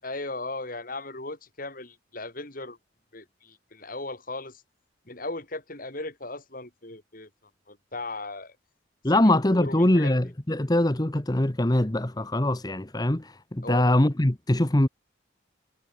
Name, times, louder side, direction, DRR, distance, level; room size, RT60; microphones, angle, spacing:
voice 1, 0.0-2.8 3.1-4.6 5.1-7.3 7.7-8.5 9.1-10.1 13.6-13.8, left 2 dB, 50° left, 5.7 m, -37 dB
voice 2, 9.0-14.9, left 1 dB, 20° left, 1.1 m, -23 dB
head